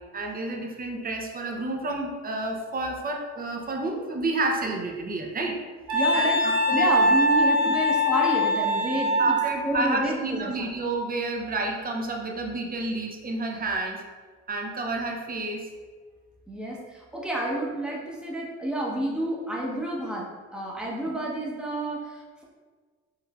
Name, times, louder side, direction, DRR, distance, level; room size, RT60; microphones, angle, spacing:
voice 1, 0.1-5.6 6.1-6.9 7.6-7.7 9.2-14.0 14.5-15.7, right 2 dB, 30° right, 2 dB, 0.7 m, -30 dB
voice 2, 5.9-6.4 6.7-9.4 9.6-10.7 16.5-20.3 20.5-22.4, right 1 dB, 5° right, -3 dB, 0.9 m, -30 dB
Wind instrument woodwind instrument, 5.9-9.5, equal, 80° right, 1.1 m, -22 dB
4.7 x 3.1 x 2.4 m, 1.5 s
cardioid pair, 90°, 30 cm